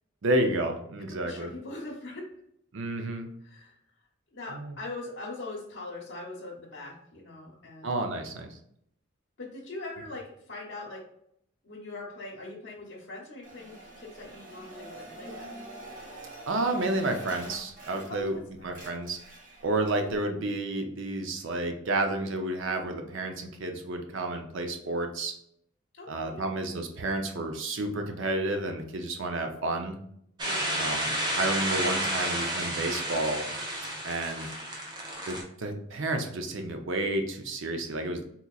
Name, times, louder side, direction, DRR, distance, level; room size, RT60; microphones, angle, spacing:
voice 1, 0.2-1.5 2.7-3.3 4.5-4.7 7.8-8.5 16.4-18.4 18.6-19.2 19.6-25.3 26.1-30.0 30.8-31.1 31.4-33.4 34.0-34.5 35.3-38.2, right 2 dB, 75° right, 5 dB, 0.6 m, -30 dB
voice 2, 1.2-2.2 3.4-3.8 4.3-7.9 9.4-11.0 11.6-15.5 18.1-18.7 25.9-26.4 30.4-31.1, left 2 dB, 70° left, -4 dB, 0.8 m, -42 dB
sound 1, 13.4-18.4 18.6-20.2, right 2 dB, 40° right, 1.0 m, -46 dB
sound 2, 30.4-35.4, right 1 dB, 20° right, 0.7 m, -31 dB
3.8 x 2.9 x 2.3 m, 0.71 s
head